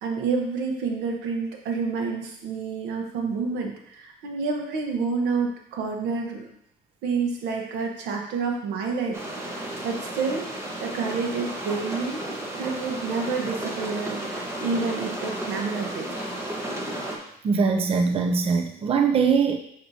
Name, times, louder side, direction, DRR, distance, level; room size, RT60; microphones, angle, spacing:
voice 1, 0.0-6.5 7.0-12.2 12.6-16.1, right 4 dB, 90° right, 2 dB, 1.1 m, -29 dB
sound 1, 9.1-17.2, right 1 dB, 15° right, 1.2 m, -33 dB
voice 2, 17.4-19.6, right 5 dB, 35° right, 4 dB, 0.5 m, -22 dB
5.9 x 5.8 x 2.8 m, 0.74 s
cardioid pair, 110°, 17 cm